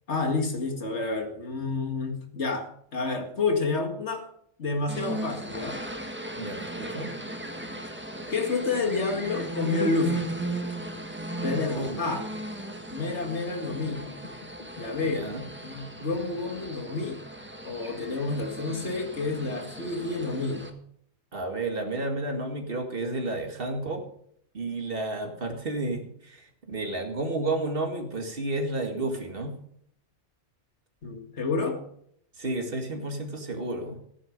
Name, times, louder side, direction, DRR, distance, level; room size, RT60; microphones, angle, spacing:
voice 1, 0.1-4.3 4.6-5.9 8.3-10.3 11.4-12.3 12.9-14.1 14.8-15.3 15.6-17.2 17.6-20.7 31.0-31.8, left 3 dB, 75° left, 5 dB, 2.3 m, -29 dB
sound 1, 4.9-20.7, right 1 dB, 10° right, 1.6 m, -36 dB
voice 2, 6.4-7.1 11.7-12.0 15.0-15.4 21.3-24.0 24.5-29.6 32.4-34.0, right 2 dB, 55° right, 4 dB, 2.3 m, -31 dB
sound 2, 13.6-16.6, left 3 dB, 40° left, 1.6 m, -48 dB
14.5 x 10.5 x 5.2 m, 0.67 s
omnidirectional pair, 1.2 m